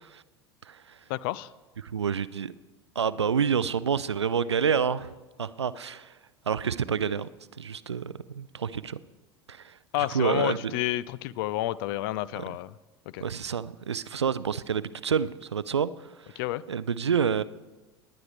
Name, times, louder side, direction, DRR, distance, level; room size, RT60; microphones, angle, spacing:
voice 1, 1.1-1.5 9.9-12.8 13.1-13.2 16.4-16.6, left 15 dB, 60° left, 20 dB, 0.4 m, -30 dB
voice 2, 1.8-2.5 3.0-5.1 5.4-6.1 6.5-7.3 7.6-9.0 9.5-10.6 12.4-12.5 13.2-15.9 16.7-17.4, right 7 dB, 85° right, 18 dB, 0.4 m, -28 dB
19.0 x 9.7 x 3.3 m, 1.2 s
figure-of-eight pair, 75°, 14 cm